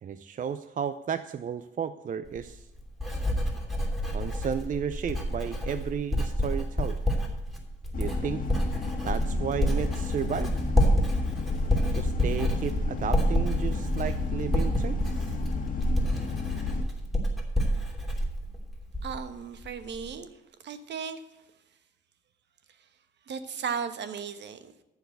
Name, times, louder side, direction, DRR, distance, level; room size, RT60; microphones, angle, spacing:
voice 1, 0.0-2.7 4.1-7.0 8.0-8.4 9.0-10.6 11.8-15.2, right 8 dB, 40° right, 11 dB, 0.5 m, -33 dB
Writing, 2.3-19.3 19.6-20.1, equal, ahead, 3.0 m, -28 dB
sound 1, 7.9-16.8, left 5 dB, 45° left, 1.6 m, -33 dB
voice 2, 19.0-20.3 20.6-21.2 23.3-24.7, right 6 dB, 65° right, 10 dB, 1.2 m, -35 dB
14.0 x 4.8 x 7.8 m, 0.96 s
cardioid pair, 90°, 20 cm